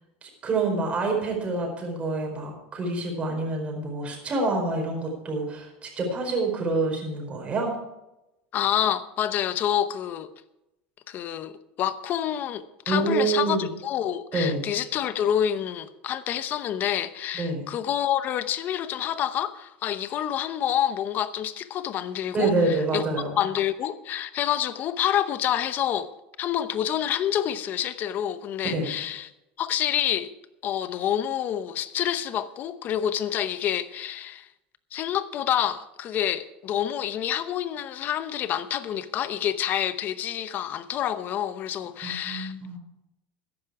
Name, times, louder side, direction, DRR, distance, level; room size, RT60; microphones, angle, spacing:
voice 1, 0.2-7.7 12.9-13.7 14.3-14.7 17.3-17.7 22.3-23.4 28.6-28.9 42.0-42.8, right 3 dB, 25° right, 4.5 m, -27 dB
voice 2, 8.5-10.3 11.1-23.0 23.4-26.1 26.4-29.3 29.6-30.3 30.6-34.5 34.9-42.5, left 10 dB, 40° left, 0.8 m, -28 dB
14.0 x 10.5 x 4.8 m
supercardioid pair, 140°, 5 cm